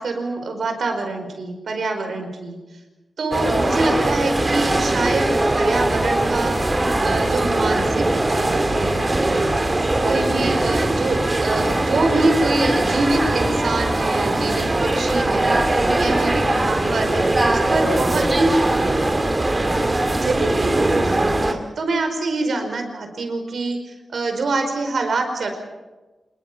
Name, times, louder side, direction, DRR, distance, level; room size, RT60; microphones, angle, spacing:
voice 1, 0.0-2.6 3.2-6.6 7.0-9.6 10.0-18.5 20.2-25.5, right 2 dB, 70° right, 5 dB, 4.9 m, -25 dB
sound 1, 3.3-21.5, right 2 dB, 25° right, 2.3 m, -20 dB
27.0 x 21.5 x 5.7 m, 1.2 s
wide cardioid pair, 125°, 0 cm